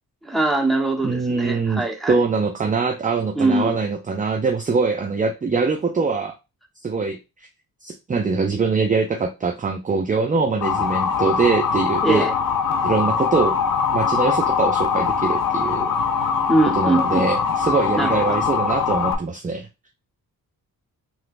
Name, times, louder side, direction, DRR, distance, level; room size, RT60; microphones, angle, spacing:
voice 1, 0.2-2.1 3.3-3.8 12.0-12.3 16.5-17.2 17.9-18.4, right 2 dB, ahead, -1 dB, 1.0 m, -22 dB
voice 2, 1.0-6.3 6.8-7.2 7.8-12.3 12.8-13.6 13.9-15.9 16.8-19.7, right 4 dB, 20° right, 5 dB, 0.4 m, -23 dB
Motor vehicle (road) / Siren, 10.6-19.1, left 6 dB, 60° left, 0.6 m, -22 dB
3.1 x 3.0 x 2.5 m, 0.26 s
cardioid pair, 70°, 37 cm